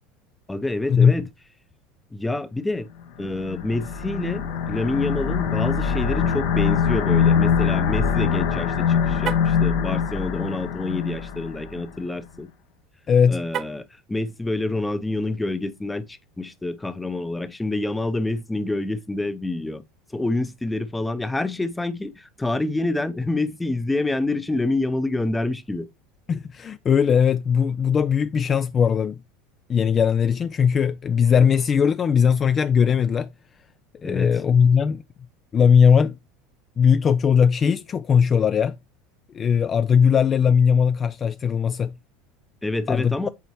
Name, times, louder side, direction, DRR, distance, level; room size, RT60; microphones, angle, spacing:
voice 1, 0.5-1.3 2.1-2.9 3.2-12.5 13.3-19.8 20.1-25.9 34.0-34.3 42.6-43.3, left 2 dB, 10° left, 0.7 m, -27 dB
sound 1, 3.2-11.9, left 7 dB, 70° left, 1.2 m, -23 dB
Car, 9.2-9.6 13.5-14.0, right 10 dB, 45° right, 0.4 m, -31 dB
voice 2, 13.1-13.4 26.3-29.2 29.7-33.3 34.0-35.0 35.5-36.2 36.8-38.8 39.3-41.9 42.9-43.3, left 7 dB, 35° left, 0.3 m, -19 dB
8.2 x 4.1 x 3.0 m
hypercardioid pair, 80°, 0 cm